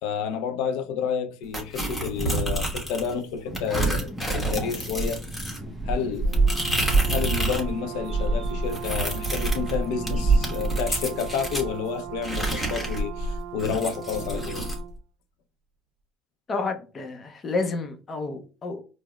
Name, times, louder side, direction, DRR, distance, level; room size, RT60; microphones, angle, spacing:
voice 1, 0.0-5.2 5.8-6.3 7.1-14.7, left 7 dB, 75° left, 0.5 m, -30 dB
sound 1, 1.5-3.1 3.5-7.7 8.0-11.7 12.2-14.8, right 2 dB, 10° left, 1.2 m, -26 dB
sound 2, 3.5-10.6, equal, 10° right, 0.7 m, -40 dB
Brass instrument, 6.2-15.0, right 11 dB, 75° right, 0.4 m, -39 dB
voice 2, 16.5-18.8, left 3 dB, 30° left, 0.6 m, -30 dB
4.8 x 2.0 x 2.3 m
cardioid pair, 120°, 0 cm